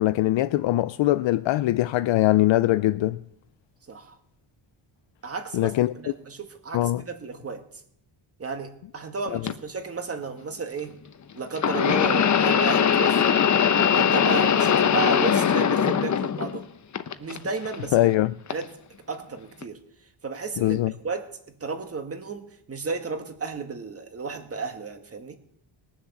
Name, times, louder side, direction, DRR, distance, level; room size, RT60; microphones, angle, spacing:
voice 1, 0.0-3.2 5.5-5.9 6.7-7.0 9.3-9.5 17.9-18.3 20.6-20.9, left 15 dB, 70° left, 0.6 m, -22 dB
voice 2, 5.2-7.8 8.4-11.0 11.3-13.4 13.9-16.7 17.2-18.1 18.5-18.7 19.1-19.8 20.2-21.3 21.6-25.4, right 4 dB, 30° right, 1.7 m, -33 dB
sound 1, 9.5-9.6 11.6-16.6 16.9-17.7 18.5-18.6 19.6-19.7, left 8 dB, 40° left, 0.8 m, -21 dB
20.5 x 7.3 x 7.2 m
cardioid pair, 145°, 47 cm